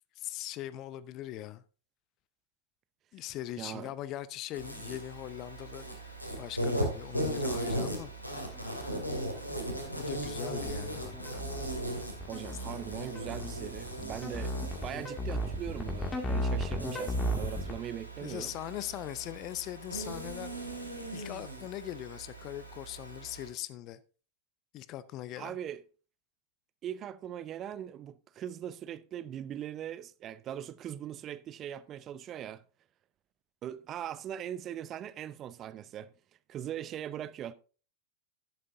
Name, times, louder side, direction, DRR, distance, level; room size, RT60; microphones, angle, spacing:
voice 1, 0.2-1.6 3.1-8.1 8.6-8.9 9.5-11.5 18.2-20.6 21.1-24.0 24.7-25.6, left 13 dB, 35° left, 0.6 m, -41 dB
voice 2, 3.6-3.9 12.3-18.5 25.4-25.8 26.8-32.6 33.6-36.1 36.5-37.5, right 10 dB, 30° right, 0.5 m, -40 dB
Insect, 4.5-23.5, right 1 dB, 90° left, 2.6 m, -38 dB
sound 1, 8.5-17.7, equal, 15° left, 2.2 m, -35 dB
11.5 x 11.0 x 2.7 m
figure-of-eight pair, 90°, 0 cm